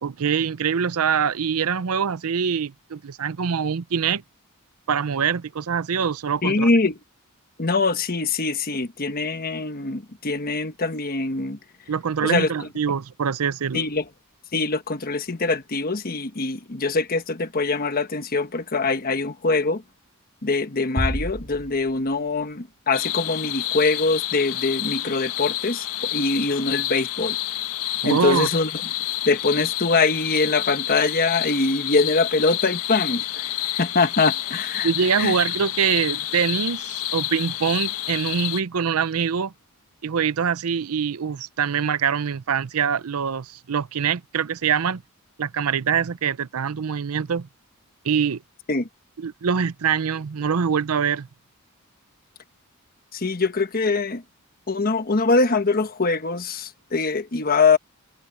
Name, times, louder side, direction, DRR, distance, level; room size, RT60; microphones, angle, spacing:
voice 1, 0.0-4.2 4.9-6.7 11.9-13.8 28.0-28.5 34.8-39.5 40.0-45.0 45.4-47.5 48.0-48.4 49.2-51.3, right 7 dB, 75° right, 0.6 m, -24 dB
voice 2, 6.4-7.0 7.6-11.6 12.2-12.5 13.7-14.0 14.5-19.8 20.4-27.4 28.0-28.7 29.3-33.4 33.8-34.9 35.2-35.4 48.7-48.9 53.1-54.2 54.7-57.8, left 3 dB, 40° left, 1.2 m, -23 dB
sound 1, 21.0-22.5, equal, 35° right, 3.8 m, -30 dB
sound 2, 22.9-38.6, left 13 dB, 90° left, 1.7 m, -29 dB
head